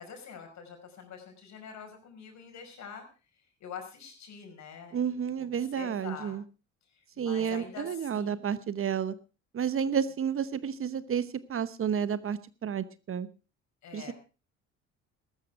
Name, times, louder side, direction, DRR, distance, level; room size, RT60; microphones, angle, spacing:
voice 1, 0.0-3.0 3.6-6.4 6.9-8.5 13.8-14.1, left 7 dB, 60° left, 4 dB, 5.3 m, -45 dB
voice 2, 4.9-6.4 7.2-9.1 9.5-13.3 13.9-14.1, right 8 dB, 40° right, 15 dB, 1.0 m, -31 dB
14.5 x 12.5 x 4.6 m, 0.34 s
supercardioid pair, 70°, 32 cm